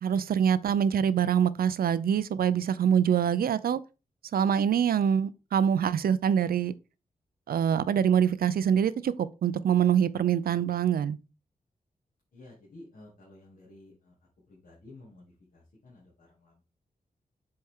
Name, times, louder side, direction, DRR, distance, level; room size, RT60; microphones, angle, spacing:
voice 1, 0.0-3.8 4.3-6.7 7.5-11.2, right 8 dB, 85° right, 0.5 m, -25 dB
voice 2, 12.3-14.1 14.5-16.6, left 2 dB, 70° left, 2.5 m, -52 dB
7.6 x 4.4 x 3.7 m
wide cardioid pair, 160°, 15 cm